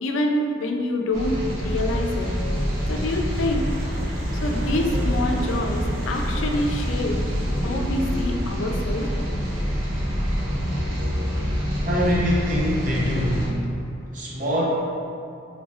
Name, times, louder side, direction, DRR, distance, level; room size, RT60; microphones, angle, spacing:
voice 1, 0.0-2.3 2.9-3.6 4.3-7.2 7.6-9.1, left 1 dB, 90° left, 2 dB, 0.4 m, -26 dB
sound 1, 1.1-13.5, equal, 85° right, 0.9 m, -26 dB
sound 2, 1.7-12.7, left 1 dB, 25° left, 0.6 m, -37 dB
voice 2, 11.9-13.6 14.1-14.6, equal, 40° right, -4 dB, 0.6 m, -24 dB
3.1 x 2.4 x 4.1 m, 2.6 s
head